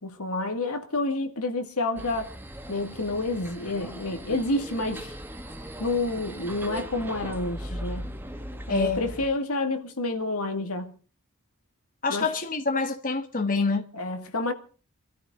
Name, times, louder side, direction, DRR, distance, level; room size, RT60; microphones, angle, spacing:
voice 1, 0.0-2.3 2.7-5.1 5.8-8.1 8.7-10.9 12.1-12.3 13.9-14.5, left 2 dB, 80° left, 2.2 m, -29 dB
sound 1, 2.0-9.3, equal, 10° right, 1.2 m, -39 dB
voice 2, 8.7-9.0 12.0-13.8, left 4 dB, 35° left, 1.3 m, -26 dB
26.5 x 13.5 x 3.8 m
head